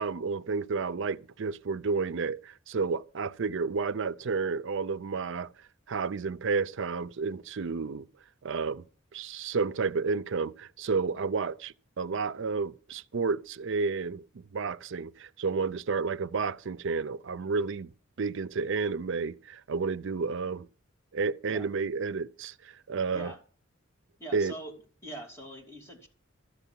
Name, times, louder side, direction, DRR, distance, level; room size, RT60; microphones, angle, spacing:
voice 1, 0.0-5.5 5.9-8.0 8.4-8.8 9.1-17.9 18.2-20.7 21.1-23.3 24.3-24.5, right 4 dB, 65° right, 0.5 m, -31 dB
voice 2, 24.2-24.7 25.0-26.1, right 1 dB, 15° left, 2.7 m, -43 dB
13.5 x 6.9 x 7.4 m
head